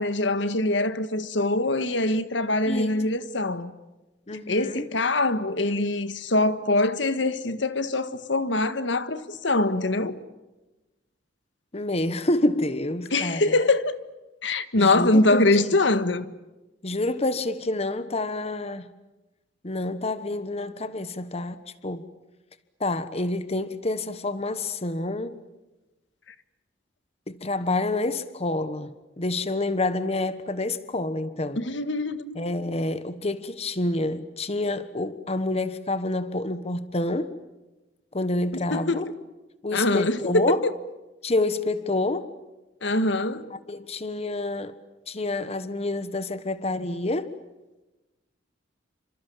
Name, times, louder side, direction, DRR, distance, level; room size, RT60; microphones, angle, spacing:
voice 1, 0.0-3.7 4.5-10.2 13.1-13.9 14.4-16.3 31.6-32.3 38.7-39.0 39.7-40.6 42.8-43.5, left 2 dB, 80° left, 1.6 m, -23 dB
voice 2, 2.7-3.0 4.3-4.9 11.7-13.5 14.8-15.8 16.8-18.9 19.6-22.0 22.8-25.4 27.3-31.6 32.3-37.4 38.1-39.1 39.6-40.6 41.2-42.3 43.7-44.8 45.1-47.3, left 2 dB, 35° left, 1.2 m, -28 dB
29.5 x 26.5 x 7.3 m
head